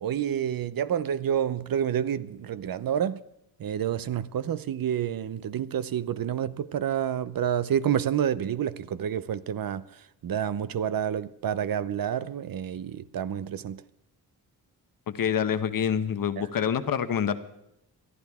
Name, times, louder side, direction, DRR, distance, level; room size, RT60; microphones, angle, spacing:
voice 1, 0.0-3.2 3.6-9.9 10.2-13.8, right 9 dB, 60° right, 0.7 m, -29 dB
voice 2, 15.1-17.4, left 8 dB, 60° left, 1.1 m, -26 dB
22.5 x 12.5 x 3.6 m
cardioid pair, 95°, 38 cm